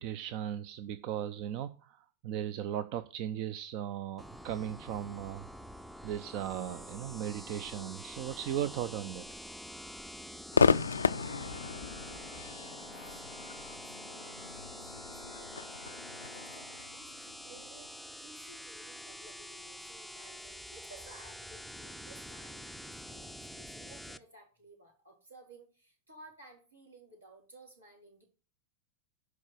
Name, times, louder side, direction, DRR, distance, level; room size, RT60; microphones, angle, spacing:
voice 1, 0.0-5.5 6.0-9.2, right 10 dB, 45° right, 0.6 m, -37 dB
sound 1, 4.2-24.2, equal, ahead, 0.6 m, -46 dB
Crowd / Fireworks, 10.5-17.9, left 5 dB, 75° left, 0.4 m, -33 dB
voice 2, 13.7-14.9 15.1-28.2, right 2 dB, 80° right, 4.4 m, -56 dB
11.0 x 4.8 x 7.4 m
figure-of-eight pair, 90°, 0 cm